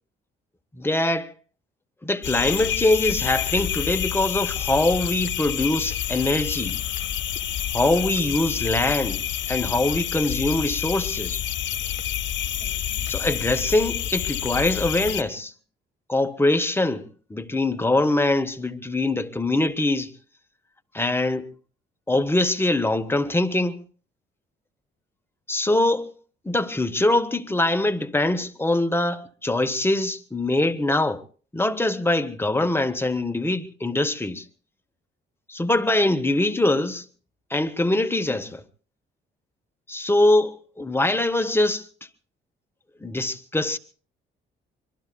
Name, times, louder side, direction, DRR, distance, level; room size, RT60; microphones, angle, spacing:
voice 1, 0.7-1.3 2.0-6.7 7.7-9.2 9.5-11.4 13.1-15.5 16.1-20.1 20.9-21.5 22.1-23.8 25.5-26.1 26.4-31.2 31.5-34.4 35.5-37.0 37.5-38.6 39.9-41.9 43.0-43.8, left 2 dB, 10° left, 1.3 m, -23 dB
sound 1, 2.2-15.2, left 10 dB, 65° left, 1.4 m, -28 dB
25.0 x 22.5 x 2.3 m
cardioid pair, 90°, 20 cm